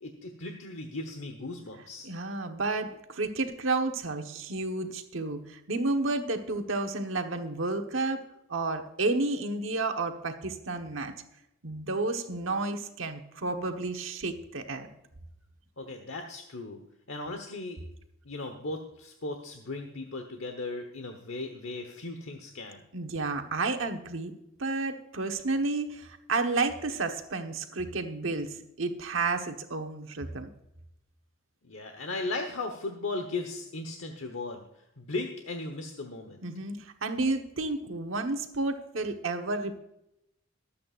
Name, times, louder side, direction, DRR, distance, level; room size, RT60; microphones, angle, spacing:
voice 1, 0.0-2.1 15.8-16.8 17.1-17.8 18.2-22.8 31.6-34.6 35.0-36.4, left 2 dB, 75° left, 5 dB, 1.2 m, -37 dB
voice 2, 2.0-8.2 8.5-11.1 11.6-14.9 22.9-24.3 24.6-30.5 36.4-39.8, right 3 dB, 70° right, 5 dB, 1.2 m, -31 dB
23.5 x 8.6 x 2.5 m, 0.84 s
head